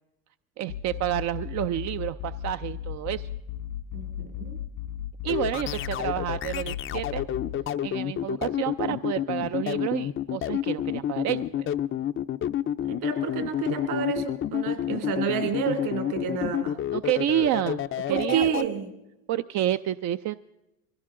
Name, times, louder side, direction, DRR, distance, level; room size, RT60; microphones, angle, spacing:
voice 1, 0.6-3.3 5.2-7.2 7.8-11.7 16.9-18.7 19.3-20.3, right 12 dB, 40° right, 11 dB, 0.5 m, -29 dB
sound 1, 0.7-7.5, left 10 dB, 90° left, 1.9 m, -36 dB
voice 2, 3.9-4.6 12.9-16.7 18.1-18.9, right 7 dB, 60° right, 6 dB, 3.1 m, -29 dB
sound 2, 5.3-18.6, left 11 dB, 30° left, 0.5 m, -29 dB
23.0 x 16.5 x 3.8 m, 0.92 s
hypercardioid pair, 90°, 44 cm